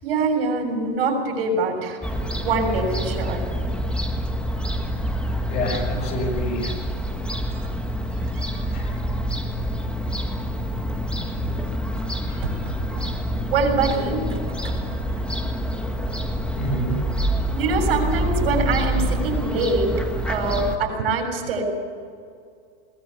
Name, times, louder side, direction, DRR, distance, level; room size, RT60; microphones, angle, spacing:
voice 1, 0.0-2.0 2.4-3.5 8.2-8.6 12.4-13.1 13.5-14.4 14.6-15.4 17.5-19.9 20.3-21.6, right 3 dB, 80° right, 2 dB, 7.1 m, -24 dB
Fowl / Gull seagull, 2.0-20.8, equal, 5° left, 1.7 m, -26 dB
voice 2, 5.5-6.8 8.7-9.0 12.3-12.4 16.5-17.0, equal, 30° left, -2 dB, 5.9 m, -28 dB
21.5 x 16.5 x 8.3 m, 2.2 s
supercardioid pair, 140°, 30 cm